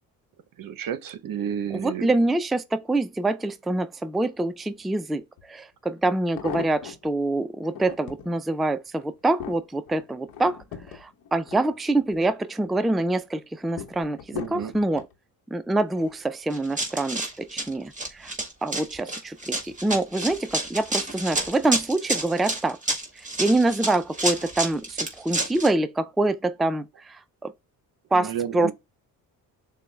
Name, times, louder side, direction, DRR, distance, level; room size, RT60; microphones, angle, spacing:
voice 1, 0.6-2.1 14.3-14.7 28.1-28.7, right 9 dB, 55° right, 0.9 m, -31 dB
voice 2, 1.7-5.2 5.5-10.6 10.9-15.0 15.5-18.3 18.6-22.8 23.2-27.5 28.1-28.7, right 2 dB, ahead, 0.4 m, -25 dB
sound 1, 5.4-5.5 6.1-7.1 7.6-8.3 8.8-12.3 12.6-13.1 13.8-15.1 15.9-16.3 16.6-16.7, left 8 dB, 60° left, 1.0 m, -39 dB
Run, 16.5-25.7, right 2 dB, 20° right, 1.7 m, -29 dB
6.7 x 2.3 x 3.2 m
supercardioid pair, 70°, 39 cm